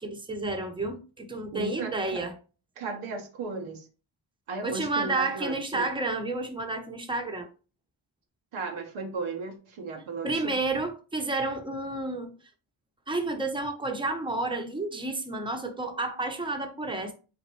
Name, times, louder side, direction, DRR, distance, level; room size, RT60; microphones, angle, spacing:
voice 1, 0.0-2.3 4.6-7.5 10.2-12.3 13.1-17.1, right 2 dB, 10° right, 0.8 m, -31 dB
voice 2, 1.5-2.2 2.8-3.9 4.5-5.9 8.5-10.6, right 3 dB, 90° right, 1.1 m, -35 dB
4.1 x 3.9 x 3.1 m
cardioid pair, 70°, 48 cm